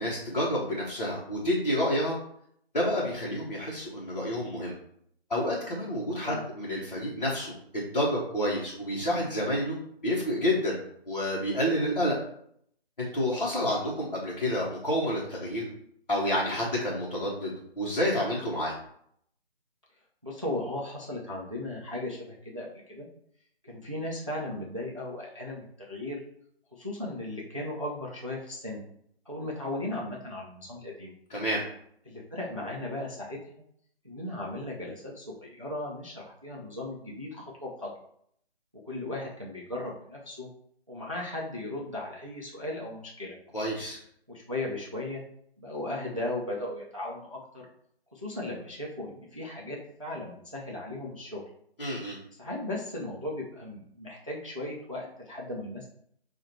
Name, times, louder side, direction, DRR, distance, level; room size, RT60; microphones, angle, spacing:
voice 1, 0.0-2.2 2.7-4.7 5.3-9.8 10.0-10.8 11.1-12.2 13.0-15.7 16.1-18.7 31.3-31.6 43.5-44.0 51.8-52.2, equal, 40° left, -6 dB, 0.9 m, -29 dB
voice 2, 20.2-23.1 23.6-26.2 26.7-28.8 29.3-31.1 32.1-33.6 34.0-37.9 38.9-40.5 40.9-43.4 44.3-45.2 45.6-47.7 48.1-51.4 52.4-55.9, left 1 dB, 35° right, -3 dB, 0.5 m, -36 dB
4.4 x 2.4 x 4.3 m, 0.68 s
figure-of-eight pair, 180°, 31 cm